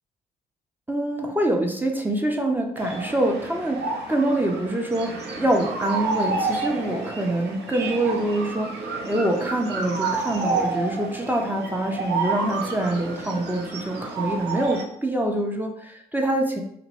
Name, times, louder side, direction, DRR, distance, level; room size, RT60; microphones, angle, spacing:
voice 1, 0.9-16.6, right 1 dB, 10° right, 1 dB, 0.5 m, -25 dB
sound 1, 2.8-14.8, right 4 dB, 60° right, 0.5 m, -30 dB
2.8 x 2.0 x 2.9 m, 0.71 s
hypercardioid pair, 40°, 20 cm